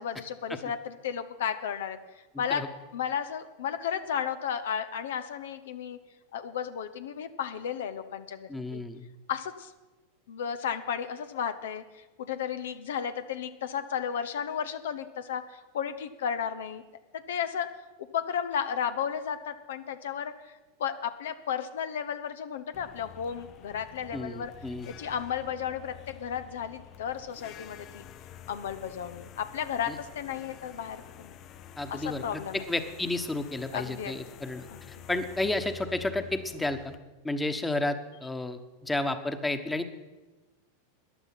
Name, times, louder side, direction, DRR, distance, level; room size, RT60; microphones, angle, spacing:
voice 1, 0.0-2.0 2.4-2.7 2.9-6.0 6.3-8.8 9.3-9.7 10.3-16.8 17.1-17.7 18.1-20.5 20.8-24.5 24.9-28.0 28.5-31.3 31.9-32.6 33.7-34.2 34.7-34.8, left 8 dB, 75° left, 10 dB, 0.8 m, -33 dB
voice 2, 2.3-2.7 8.5-9.1 24.1-24.9 29.9-30.0 31.8-32.4 32.7-36.9 37.2-39.9, left 2 dB, 10° left, 8 dB, 1.2 m, -32 dB
sound 1, 22.7-37.0, left 9 dB, 45° left, 0.7 m, -49 dB
14.0 x 10.5 x 5.9 m, 1.1 s
hypercardioid pair, 95°, 0 cm